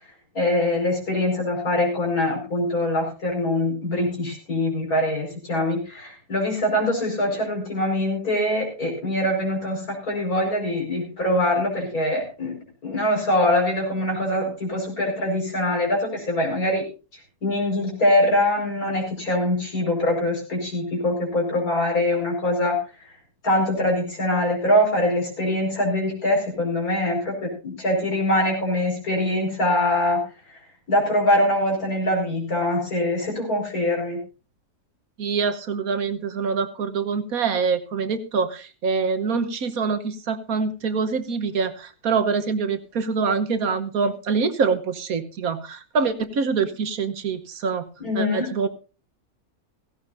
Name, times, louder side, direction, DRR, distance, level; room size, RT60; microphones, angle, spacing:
voice 1, 0.3-12.6 12.8-16.8 17.4-22.8 23.1-23.2 23.4-30.2 30.5-30.6 30.9-34.2 48.0-48.5, left 1 dB, 70° left, 0 dB, 5.5 m, -23 dB
voice 2, 35.2-47.8 48.1-48.7, right 5 dB, 70° right, 10 dB, 1.6 m, -25 dB
16.5 x 16.0 x 2.6 m, 0.32 s
omnidirectional pair, 1.6 m